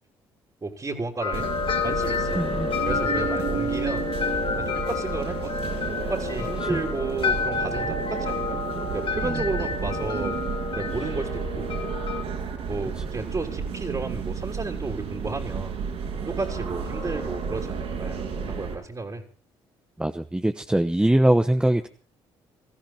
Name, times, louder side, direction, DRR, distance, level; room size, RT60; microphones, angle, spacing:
voice 1, 0.6-1.5 1.8-2.4 2.8-4.1 4.6-5.6 6.0-8.6 8.9-10.4 10.7-11.7 12.7-15.7 16.2-19.2, right 3 dB, 35° right, 1 dB, 3.5 m, -32 dB
sound 1, 1.2-12.2, left 5 dB, 50° left, 2.5 m, -29 dB
sound 2, 1.3-18.8, right 6 dB, 75° right, 6.1 m, -32 dB
voice 2, 2.3-2.7 6.7-6.8 9.2-9.4 20.0-21.9, right 1 dB, 10° right, 7 dB, 1.0 m, -22 dB
21.0 x 14.5 x 4.4 m, 0.37 s
supercardioid pair, 60°, 11 cm